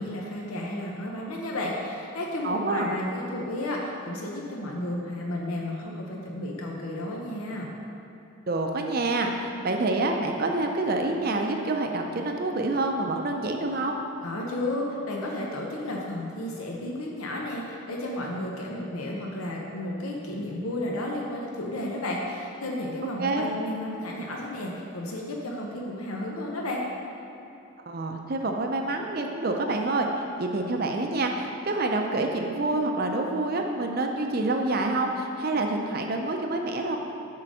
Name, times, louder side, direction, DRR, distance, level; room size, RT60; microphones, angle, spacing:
voice 1, 0.0-7.7 14.2-26.8, left 1 dB, 85° left, -2 dB, 0.9 m, -32 dB
voice 2, 2.4-2.9 8.5-14.0 23.2-23.5 27.9-30.1 30.4-37.0, right 2 dB, 45° right, 3 dB, 0.5 m, -27 dB
7.6 x 3.9 x 6.2 m, 3.0 s
head